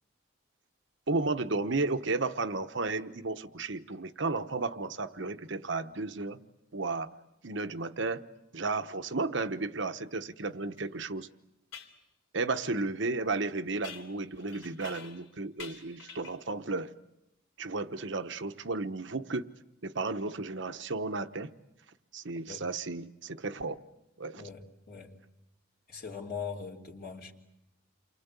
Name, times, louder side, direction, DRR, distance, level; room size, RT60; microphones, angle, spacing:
voice 1, 1.1-6.4 6.7-7.1 7.4-8.2 8.5-11.3 12.3-16.9 17.6-19.5 19.8-21.5 22.1-23.8 24.2-24.5, right 3 dB, 60° right, 1.1 m, -33 dB
sound 1, 10.8-10.9 11.7-12.0 13.8-15.3 15.6-16.5, left 6 dB, 75° left, 3.5 m, -48 dB
voice 2, 24.3-25.1 25.9-27.3, left 6 dB, 45° left, 3.0 m, -41 dB
29.5 x 24.0 x 8.2 m
head